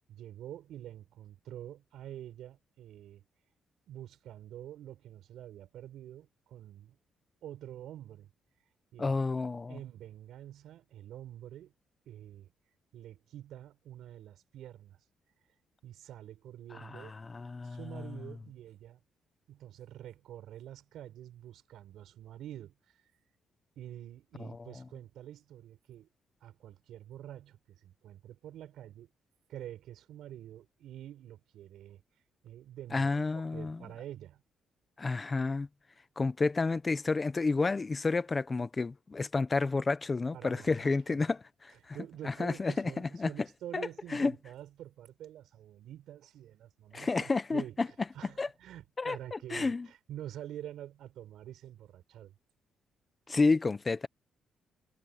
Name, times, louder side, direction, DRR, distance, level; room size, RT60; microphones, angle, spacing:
voice 1, 0.1-3.2 3.9-7.0 7.4-8.3 8.9-9.2 9.7-11.7 12.1-12.5 12.9-15.0 15.8-17.1 17.6-19.0 19.5-23.0 23.8-26.1 26.4-29.1 29.5-32.0 32.4-34.4 40.3-41.2 41.9-52.3, right 12 dB, 80° right, 7.0 m, -47 dB
voice 2, 9.0-9.8 16.9-18.0 32.9-33.8 35.0-35.7 36.2-41.7 42.2-43.3 43.7-44.3 46.9-47.9 48.4-48.5 49.0-49.9 53.3-54.1, left 3 dB, 25° left, 0.9 m, -30 dB
cardioid pair, 140°, 0 cm